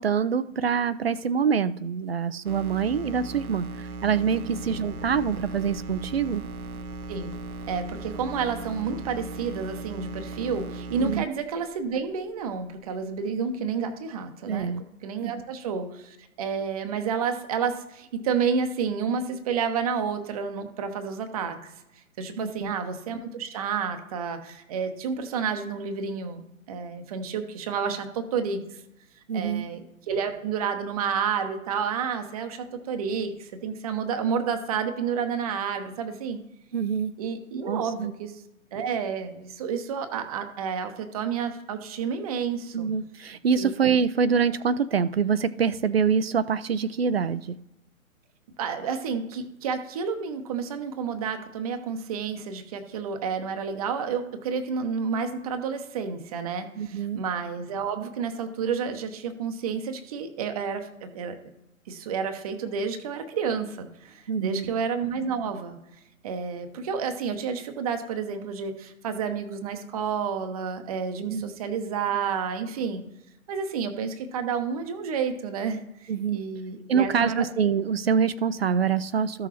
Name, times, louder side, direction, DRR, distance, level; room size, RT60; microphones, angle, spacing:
voice 1, 0.0-6.4 11.0-11.2 14.4-14.8 15.2-15.3 22.4-22.7 29.3-29.7 36.7-37.1 37.6-38.1 42.7-47.6 56.8-57.2 64.3-64.7 71.3-71.5 76.1-76.4 76.9-79.5, right 6 dB, 45° right, 15 dB, 0.4 m, -25 dB
sound 1, 2.4-11.2, right 3 dB, 85° right, 0.6 m, -38 dB
sound 2, 4.5-13.0 14.5-14.6, left 1 dB, ahead, 0.7 m, -49 dB
voice 2, 7.7-21.7 22.2-28.6 29.3-36.4 37.2-38.4 38.7-42.9 43.6-43.7 48.6-61.4 61.9-65.8 66.2-73.0 73.5-77.4, right 6 dB, 25° right, 7 dB, 0.8 m, -30 dB
14.0 x 6.2 x 2.9 m, 0.90 s
figure-of-eight pair, 125°, 42 cm